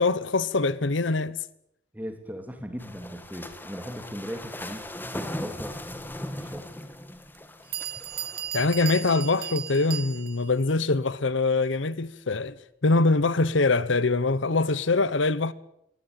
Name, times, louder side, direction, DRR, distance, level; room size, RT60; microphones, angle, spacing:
voice 1, 0.0-1.4 8.5-12.5 12.8-15.5, left 3 dB, 70° left, 0.9 m, -23 dB
voice 2, 1.9-4.9 5.1-5.8 6.3-6.7, equal, 10° right, 2.8 m, -38 dB
sound 1, 2.8-8.9, left 1 dB, 10° left, 1.8 m, -39 dB
Bell, 7.3-7.4 7.7-10.5, right 10 dB, 50° right, 1.2 m, -35 dB
22.5 x 18.0 x 8.9 m
head